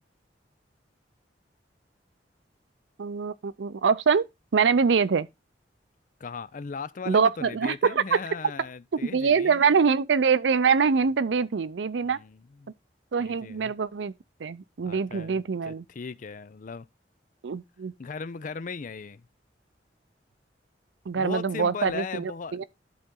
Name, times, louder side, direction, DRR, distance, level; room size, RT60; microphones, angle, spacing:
voice 1, 3.0-4.3 4.5-5.3 7.1-8.2 8.9-12.2 13.1-14.1 14.4-15.8 17.4-17.9 21.1-22.6, right 5 dB, 90° right, 0.5 m, -24 dB
voice 2, 6.2-9.6 12.0-12.7 13.2-13.7 14.8-16.9 18.0-19.3 21.2-22.6, left 5 dB, 45° left, 0.5 m, -38 dB
11.5 x 4.1 x 3.7 m
head